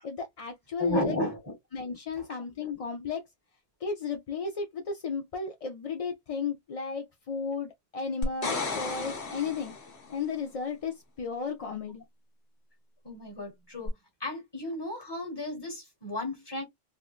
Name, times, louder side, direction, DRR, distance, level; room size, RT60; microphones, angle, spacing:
voice 1, 0.0-1.1 1.7-3.2 3.8-9.7 10.1-12.0, left 5 dB, 45° left, 0.5 m, -34 dB
voice 2, 0.8-1.4 2.2-2.4 13.0-13.9 14.2-16.6, left 1 dB, 25° left, 1.4 m, -33 dB
sound 1, 8.2-10.1 13.9-14.0, left 3 dB, 80° left, 1.4 m, -33 dB
3.6 x 2.4 x 2.4 m
omnidirectional pair, 1.1 m